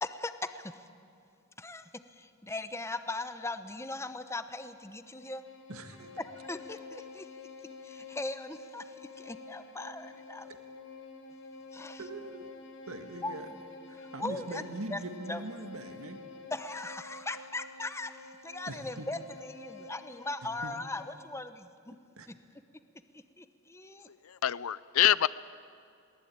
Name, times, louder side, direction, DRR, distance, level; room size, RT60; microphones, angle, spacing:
voice 1, 0.0-0.7 1.6-5.4 6.2-7.3 7.8-10.5 11.7-12.0 13.2-13.3 14.0-14.6 14.9-15.0 15.3-15.4 16.5-22.0 23.4-24.1, left 2 dB, 15° left, 10 dB, 0.8 m, -39 dB
Bowed string instrument, 4.7-21.3, left 3 dB, 60° left, 1.7 m, -49 dB
voice 2, 5.7-6.1 12.0-12.5 12.9-13.5 13.9-16.2 18.7-19.1 20.6-20.7 22.2-22.3, right 2 dB, 80° right, 6 dB, 1.9 m, -41 dB
voice 3, 24.1-25.3, left 11 dB, 80° left, 19 dB, 0.5 m, -26 dB
22.5 x 19.0 x 8.8 m, 2.3 s
head